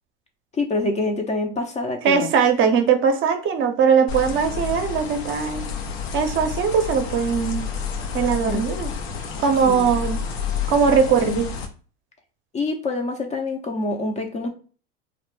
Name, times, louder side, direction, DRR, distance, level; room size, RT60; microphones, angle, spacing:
voice 1, 0.5-2.3 8.5-8.6 9.7-9.9 12.5-14.5, left 2 dB, 25° left, 4 dB, 0.4 m, -26 dB
voice 2, 2.0-5.7 6.1-7.7 8.1-8.9 9.4-10.2 10.7-11.5, right 6 dB, 40° right, 6 dB, 0.5 m, -20 dB
sound 1, 4.1-11.7, left 6 dB, 85° left, 0.6 m, -30 dB
2.1 x 2.0 x 3.0 m, 0.39 s
hypercardioid pair, 95°, 30 cm